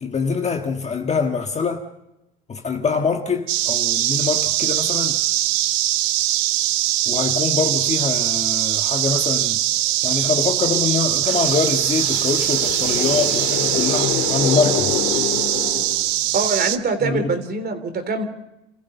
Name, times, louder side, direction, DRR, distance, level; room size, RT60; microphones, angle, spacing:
voice 1, 0.0-1.8 2.5-5.2 7.1-9.6 10.0-14.9 17.0-17.3, left 5 dB, 20° left, 1.6 m, -24 dB
sound 1, 3.5-16.8, right 15 dB, 70° right, 1.2 m, -21 dB
sound 2, 11.2-16.3, left 12 dB, 75° left, 2.1 m, -27 dB
voice 2, 16.3-18.2, right 4 dB, 30° right, 3.3 m, -23 dB
29.0 x 15.0 x 7.0 m
supercardioid pair, 120°, 33 cm